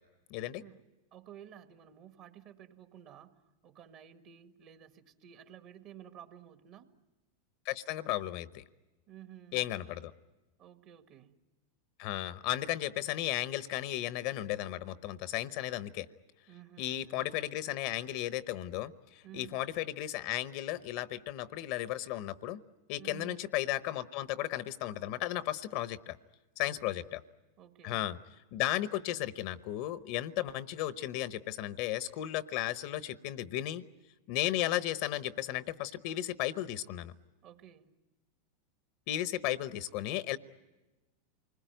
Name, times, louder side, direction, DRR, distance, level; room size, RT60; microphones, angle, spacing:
voice 1, 0.3-0.6 7.6-8.6 9.5-10.1 12.0-16.1 16.8-22.6 22.9-26.2 26.6-27.2 27.8-28.2 28.5-33.8 34.3-37.1 39.1-40.4, left 14 dB, 60° left, 15 dB, 0.8 m, -35 dB
voice 2, 1.1-6.9 9.1-9.7 10.6-11.4 16.5-17.3 19.2-19.6 23.0-23.4 26.6-27.2 27.6-28.1 37.4-38.0, right 10 dB, 50° right, 8 dB, 1.7 m, -53 dB
28.5 x 20.5 x 9.2 m, 1.1 s
hypercardioid pair, 110°, 0 cm